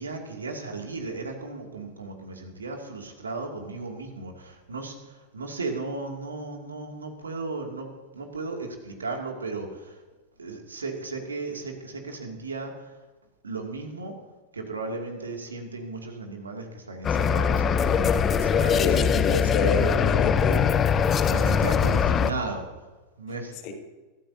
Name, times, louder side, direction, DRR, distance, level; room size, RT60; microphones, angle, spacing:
voice 1, 0.0-10.0 10.4-12.9 13.4-14.2 14.5-19.1 19.4-19.6 21.3-22.7 23.2-23.7, right 3 dB, 75° right, 2 dB, 2.5 m, -36 dB
sound 1, 17.0-22.3, left 6 dB, 25° left, 0.8 m, -22 dB
voice 2, 18.7-20.7 23.6-23.7, left 5 dB, 40° left, 4 dB, 2.3 m, -27 dB
24.5 x 13.5 x 2.8 m, 1.2 s
figure-of-eight pair, 90°, 0 cm